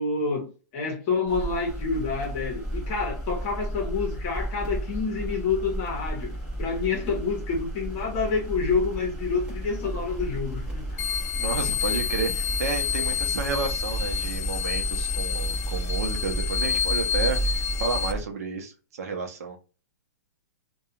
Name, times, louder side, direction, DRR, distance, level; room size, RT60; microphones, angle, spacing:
voice 1, 0.0-11.0, left 4 dB, 30° left, 0.9 m, -28 dB
sound 1, 1.3-18.2, right 1 dB, 10° right, 1.0 m, -32 dB
sound 2, 11.0-18.1, left 8 dB, 60° left, 0.5 m, -29 dB
voice 2, 11.4-19.6, right 5 dB, 60° right, 0.7 m, -31 dB
2.3 x 2.2 x 2.8 m
hypercardioid pair, 170°, 9 cm